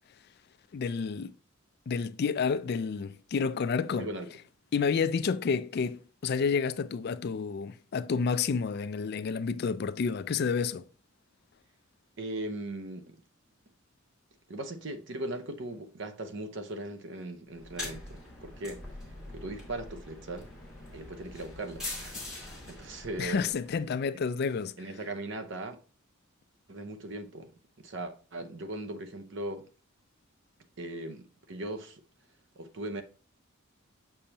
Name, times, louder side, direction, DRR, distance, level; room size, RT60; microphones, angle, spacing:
voice 1, 0.7-1.3 1.9-4.1 4.7-10.8 23.2-24.7, left 5 dB, 50° left, 0.4 m, -30 dB
voice 2, 4.0-4.3 12.2-13.2 14.5-18.8 19.3-20.5 20.9-23.5 24.8-25.8 26.7-29.7 30.8-32.0 32.6-33.0, right 1 dB, 60° right, 0.7 m, -39 dB
sound 1, 17.5-23.9, left 2 dB, 5° right, 2.7 m, -43 dB
6.8 x 5.5 x 2.9 m
head